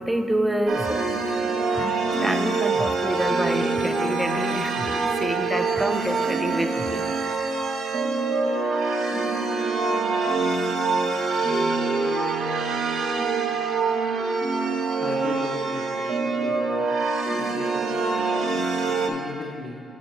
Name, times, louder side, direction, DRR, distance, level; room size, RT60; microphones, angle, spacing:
voice 1, 0.0-1.4 1.7-7.1, right 1 dB, 5° right, 7 dB, 0.4 m, -27 dB
sound 1, 0.7-19.1, right 4 dB, 65° right, 0.7 m, -25 dB
voice 2, 15.0-16.8 17.4-19.8, left 2 dB, 55° left, -4 dB, 0.9 m, -38 dB
6.3 x 6.3 x 4.5 m, 2.5 s
cardioid pair, 90°, 0 cm